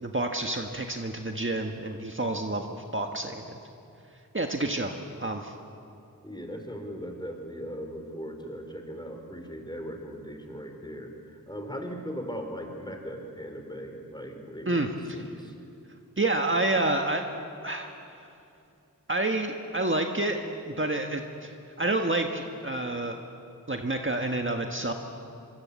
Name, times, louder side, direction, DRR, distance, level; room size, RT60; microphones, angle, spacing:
voice 1, 0.0-3.6 4.3-4.9 5.2-5.5 14.6-15.2 16.2-17.2 17.6-17.9 18.2-18.3 19.1-20.4 20.7-23.2 23.7-24.9, right 2 dB, 35° right, 3 dB, 1.5 m, -29 dB
voice 2, 6.2-15.5, equal, 10° left, 4 dB, 4.3 m, -39 dB
25.5 x 24.0 x 8.4 m, 2.6 s
wide cardioid pair, 65°, 35 cm